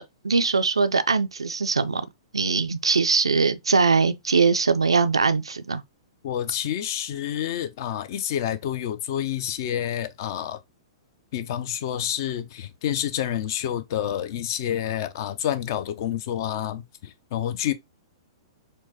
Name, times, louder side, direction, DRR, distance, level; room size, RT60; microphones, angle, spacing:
voice 1, 0.0-2.0 2.3-5.8, right 4 dB, 75° right, 0.3 m, -22 dB
voice 2, 6.2-10.6 11.3-17.7, left 10 dB, 45° left, 0.4 m, -28 dB
4.4 x 2.1 x 2.7 m
figure-of-eight pair, 105°, 3 cm